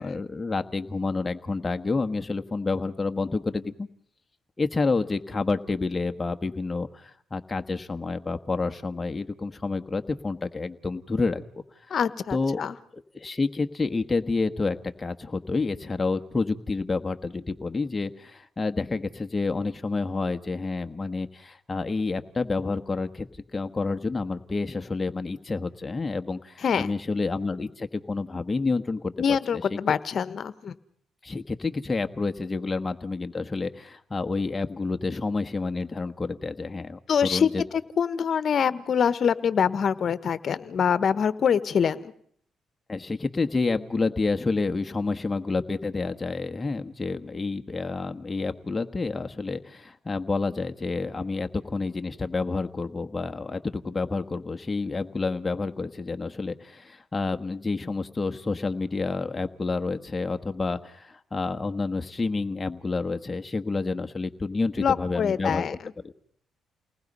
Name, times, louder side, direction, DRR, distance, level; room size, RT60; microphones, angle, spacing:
voice 1, 0.0-3.9 4.6-11.9 12.3-12.7 12.9-29.8 31.2-37.6 42.9-65.6 66.0-66.1, left 3 dB, 25° left, 7 dB, 1.3 m, -29 dB
voice 2, 11.9-12.7 26.6-26.9 29.2-30.7 37.1-37.5 38.0-42.1 64.8-65.7, left 7 dB, 55° left, 15 dB, 1.2 m, -24 dB
29.5 x 19.5 x 5.5 m, 0.64 s
cardioid pair, 90°, 0 cm